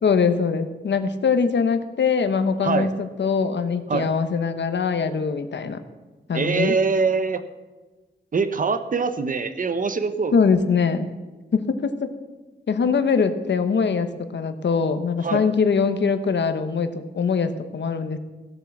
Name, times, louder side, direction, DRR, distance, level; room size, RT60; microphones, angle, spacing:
voice 1, 0.0-5.8 6.3-6.7 10.3-11.1 11.5-12.1 12.7-18.2, left 5 dB, 70° left, 9 dB, 1.0 m, -22 dB
voice 2, 6.3-7.4 8.3-10.4 15.2-15.4, right 4 dB, 45° right, 10 dB, 0.9 m, -23 dB
16.5 x 7.6 x 7.2 m, 1.2 s
wide cardioid pair, 130°, 19 cm